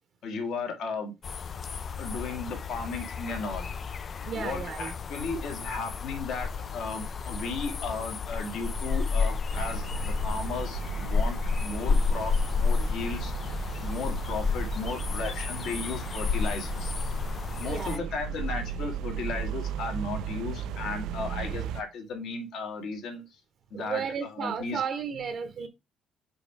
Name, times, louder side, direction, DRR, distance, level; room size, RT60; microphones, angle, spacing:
voice 1, 0.2-1.1 1.9-3.7 4.3-13.3 13.8-16.9 17.6-23.4 23.7-24.8, left 4 dB, 65° left, 1.8 m, -35 dB
sound 1, 1.2-18.0, left 5 dB, 30° left, 0.3 m, -31 dB
voice 2, 4.3-4.9 17.6-18.1 23.7-25.7, right 7 dB, 45° right, 0.9 m, -33 dB
sound 2, 9.5-21.8, right 7 dB, 80° right, 0.5 m, -35 dB
5.3 x 4.8 x 4.7 m
cardioid pair, 160°, 0 cm